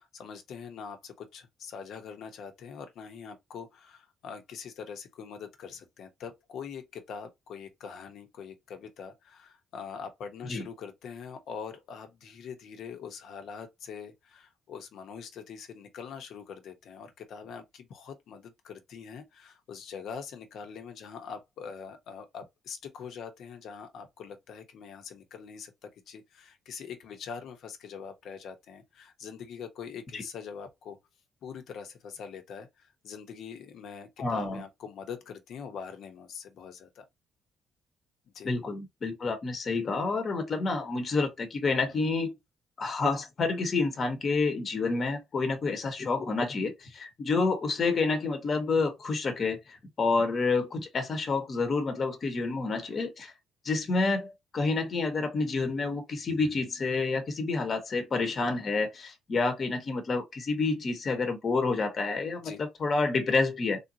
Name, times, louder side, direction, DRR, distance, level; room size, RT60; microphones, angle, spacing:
voice 1, 0.0-31.0 31.4-37.0 38.3-38.5 62.4-62.6, left 6 dB, 75° left, 1.0 m, -43 dB
voice 2, 34.2-34.6 38.4-42.3 42.8-53.3 53.6-63.8, left 3 dB, 45° left, 1.1 m, -29 dB
3.6 x 2.7 x 2.8 m
cardioid pair, 90°, 0 cm